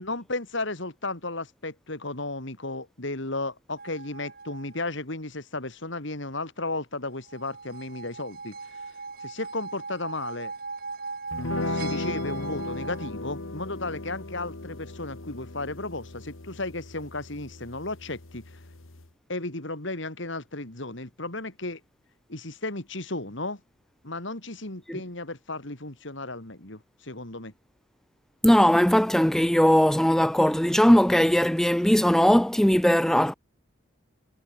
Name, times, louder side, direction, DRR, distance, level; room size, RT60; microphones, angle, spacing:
voice 1, 0.0-8.8 9.2-10.5 11.7-18.5 19.3-21.8 22.3-23.6 24.0-27.5, left 2 dB, 60° left, 3.1 m, -34 dB
sound 1, 3.8-4.8 7.3-13.1, right 4 dB, 45° right, 4.1 m, -39 dB
sound 2, 11.3-19.1, left 2 dB, 75° left, 1.7 m, -36 dB
voice 2, 28.4-33.3, equal, ahead, 0.3 m, -19 dB
head